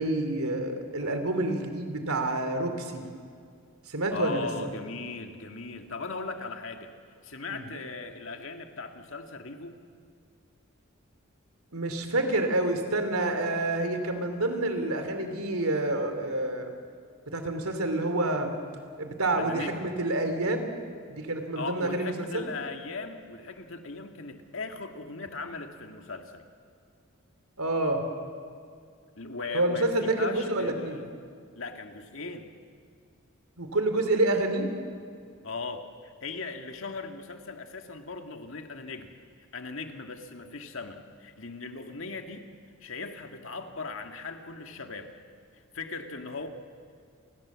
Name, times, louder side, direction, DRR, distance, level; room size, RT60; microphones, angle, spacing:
voice 1, 0.0-3.0 3.9-4.5 7.5-7.6 11.7-16.7 17.3-18.5 19.0-20.7 21.1-22.5 27.6-28.1 29.5-31.0 33.6-34.7, right 2 dB, 90° right, 7 dB, 3.2 m, -28 dB
voice 2, 4.1-6.9 7.2-9.8 19.4-19.8 21.6-26.4 29.2-31.1 31.6-32.5 35.4-39.1 39.5-42.5 42.8-45.1 45.5-46.5, left 3 dB, 65° left, 5 dB, 2.0 m, -38 dB
30.0 x 21.0 x 7.5 m, 2.3 s
head